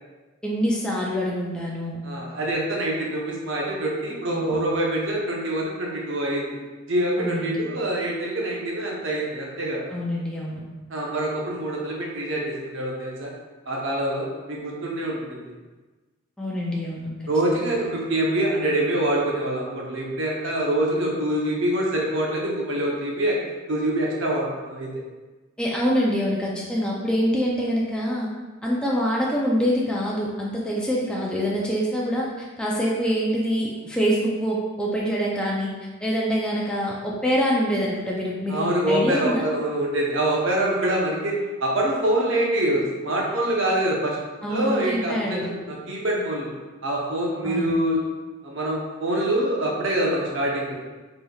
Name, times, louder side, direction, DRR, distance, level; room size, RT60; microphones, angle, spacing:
voice 1, 0.4-2.0 4.3-4.6 7.2-7.6 9.9-10.6 16.4-17.7 25.6-28.3 28.6-35.7 36.0-39.5 44.4-45.5 47.4-47.7, equal, 5° left, -4 dB, 0.4 m, -25 dB
voice 2, 2.0-6.5 6.9-9.9 10.9-13.3 13.7-15.4 17.3-23.4 23.7-24.9 38.5-44.2 44.5-46.5 46.8-48.0 48.4-50.7, right 1 dB, 65° right, -2 dB, 0.8 m, -25 dB
4.0 x 3.3 x 2.3 m, 1.2 s
head